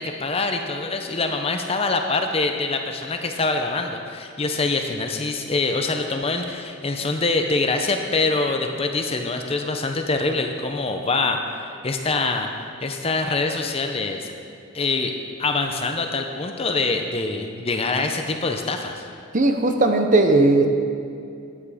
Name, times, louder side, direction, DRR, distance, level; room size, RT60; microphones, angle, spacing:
voice 1, 0.0-14.3 14.7-15.1 15.4-19.1, left 3 dB, 25° left, 5 dB, 0.6 m, -25 dB
voice 2, 19.3-20.7, right 2 dB, 35° right, 5 dB, 0.7 m, -17 dB
9.9 x 9.8 x 5.0 m, 2.4 s
head